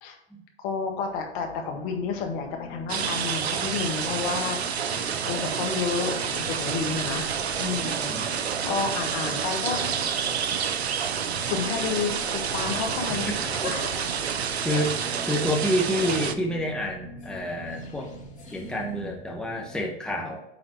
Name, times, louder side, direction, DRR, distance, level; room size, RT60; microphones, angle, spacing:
voice 1, 0.6-4.6 4.8-8.4 8.7-9.9 11.5-14.1 15.3-15.4, left 5 dB, 55° left, 3 dB, 1.8 m, -31 dB
sound 1, 0.9-19.8, left 2 dB, 25° left, 1.8 m, -43 dB
sound 2, 2.9-16.4, right 7 dB, 85° right, 0.8 m, -29 dB
voice 2, 13.1-13.7 14.6-14.9 15.2-18.1 18.5-20.4, equal, ahead, 0 dB, 1.3 m, -28 dB
8.6 x 4.0 x 4.7 m, 0.89 s
hypercardioid pair, 105°, 31 cm